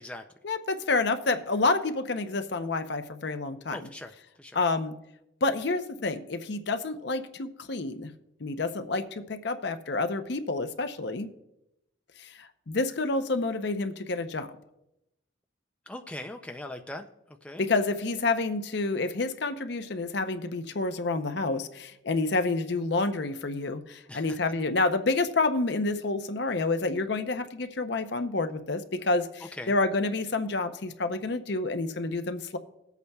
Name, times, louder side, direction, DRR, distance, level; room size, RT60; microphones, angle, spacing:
voice 1, 0.4-3.9 4.5-4.9 5.4-8.1 8.4-11.3 12.2-14.5 17.6-32.6, left 3 dB, 60° left, 8 dB, 0.6 m, -29 dB
voice 2, 3.7-4.1 4.4-4.6 15.9-17.1 17.4-17.7 24.1-24.4 29.6-29.7, left 1 dB, 5° left, 4 dB, 0.4 m, -40 dB
20.0 x 8.2 x 2.3 m, 0.86 s
head